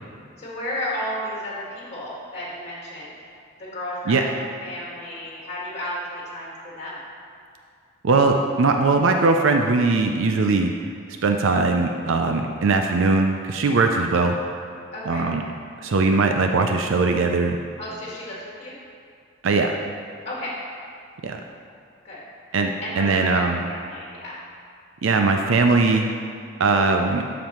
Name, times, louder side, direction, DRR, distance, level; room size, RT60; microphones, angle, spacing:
voice 1, 0.4-3.2 3.6-7.0 14.9-15.2 17.8-18.8 20.3-20.5 22.0-22.2 22.8-24.4, equal, 30° left, -6 dB, 1.8 m, -33 dB
voice 2, 8.0-10.7 11.2-14.3 15.1-15.4 15.8-17.6 19.4-19.8 21.2-21.4 22.5-23.6 25.0-26.1 26.6-27.3, right 3 dB, 65° right, 4 dB, 0.4 m, -20 dB
13.0 x 5.1 x 3.0 m, 2.3 s
head